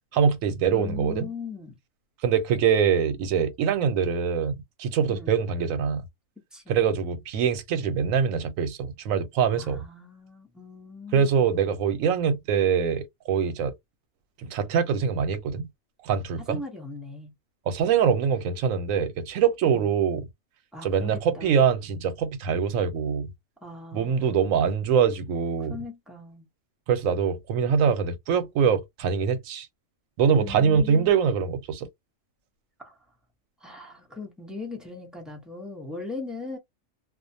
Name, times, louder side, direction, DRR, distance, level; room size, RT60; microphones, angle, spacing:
voice 1, 0.1-1.3 2.2-4.5 4.8-6.0 6.7-9.8 11.1-13.7 14.5-15.7 16.0-16.6 17.7-20.2 20.8-23.3 23.9-25.8 26.9-29.7 30.2-31.9, right 7 dB, 85° right, 1.0 m, -24 dB
voice 2, 0.7-1.8 5.1-5.4 6.5-6.8 9.5-11.5 16.4-17.3 19.7-19.9 20.7-21.7 23.6-24.4 25.6-26.5 30.4-31.2 32.8-33.0 33.6-36.6, left 3 dB, ahead, 0.3 m, -39 dB
2.4 x 2.1 x 2.6 m
omnidirectional pair, 1.4 m